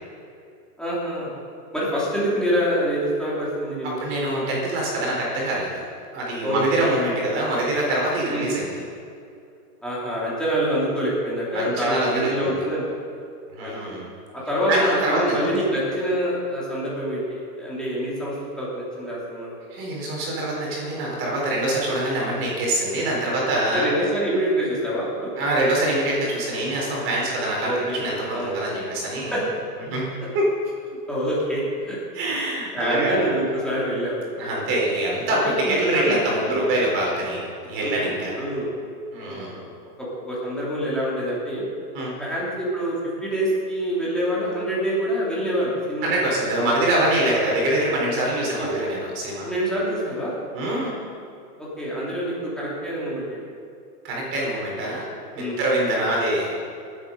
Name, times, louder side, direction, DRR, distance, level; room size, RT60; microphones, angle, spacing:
voice 1, 0.8-1.3 1.7-4.0 6.4-6.9 8.3-8.5 9.8-12.8 13.6-14.0 14.3-19.5 23.7-25.3 27.6-28.0 28.3-28.8 29.3-29.4 31.1-32.0 32.7-34.2 35.4-36.7 37.8-38.8 39.2-39.7 40.0-41.6 42.2-46.1 47.3-47.5 48.4-48.7 49.4-50.3 51.6-53.4 54.8-54.9 55.4-55.6, equal, ahead, -8 dB, 2.9 m, -26 dB
voice 2, 4.0-5.9 6.1-8.8 11.5-12.5 13.5-14.1 14.7-15.2 19.7-23.9 25.4-29.4 29.9-30.1 30.3-30.5 32.1-33.3 34.4-38.4 39.1-39.6 41.9-42.1 46.0-49.5 50.5-51.0 54.0-55.1 55.4-56.5, right 1 dB, 25° right, -3 dB, 4.2 m, -24 dB
19.0 x 8.6 x 5.3 m, 2.4 s
hypercardioid pair, 160°, 48 cm